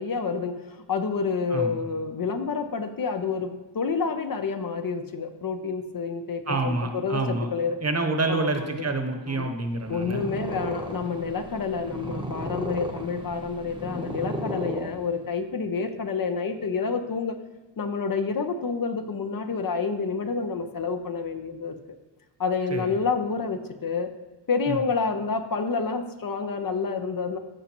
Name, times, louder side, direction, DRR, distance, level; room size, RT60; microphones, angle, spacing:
voice 1, 0.0-7.8 8.3-8.9 9.3-9.5 9.9-17.4 17.8-22.0 22.4-24.1 24.5-27.4, left 5 dB, 50° left, 7 dB, 0.7 m, -29 dB
voice 2, 6.5-7.5 7.8-10.2 22.7-22.9 24.7-24.8, right 3 dB, 35° right, 5 dB, 1.0 m, -27 dB
Purr, 9.7-15.4, right 1 dB, 10° right, 0.9 m, -35 dB
14.0 x 5.2 x 3.0 m, 1.2 s
wide cardioid pair, 120°, 44 cm